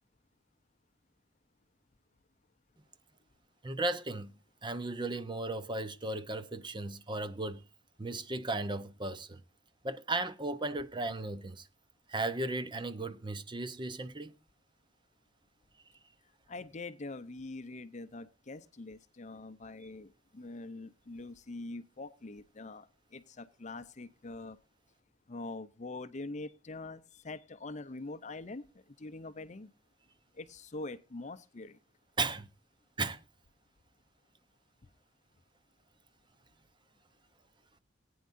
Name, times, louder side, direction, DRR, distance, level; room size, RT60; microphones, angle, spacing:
voice 1, 3.6-4.3 4.6-7.6 8.0-9.4 9.8-11.7 12.1-14.3 32.2-32.5 33.0-33.2, right 2 dB, 25° right, 0.8 m, -35 dB
voice 2, 16.5-22.9 23.1-24.6 25.3-28.6 29.0-29.7 30.4-31.8, left 2 dB, 35° left, 0.6 m, -44 dB
19.0 x 9.4 x 2.6 m
head